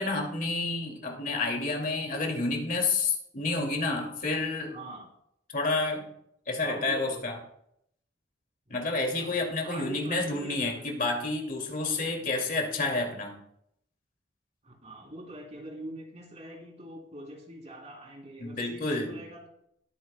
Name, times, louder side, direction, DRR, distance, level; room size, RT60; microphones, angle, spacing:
voice 1, 0.0-4.8 5.5-6.0 6.5-7.4 8.7-13.4 18.4-19.2, left 3 dB, 50° left, 1 dB, 2.3 m, -29 dB
voice 2, 4.7-5.1 6.6-7.4 9.1-10.8 12.2-12.5 14.6-19.5, right 1 dB, 40° right, -1 dB, 3.3 m, -44 dB
20.5 x 9.5 x 2.2 m, 0.72 s
head